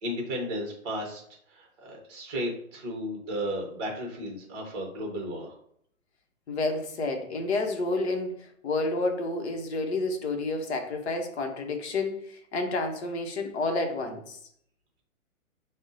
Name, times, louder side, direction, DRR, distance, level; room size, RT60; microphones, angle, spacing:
voice 1, 0.0-1.2 1.5-5.5, equal, 20° right, 0 dB, 0.7 m, -34 dB
voice 2, 6.5-14.4, left 2 dB, 50° left, 4 dB, 0.8 m, -30 dB
5.1 x 2.1 x 2.6 m, 0.67 s
hypercardioid pair, 140°, 42 cm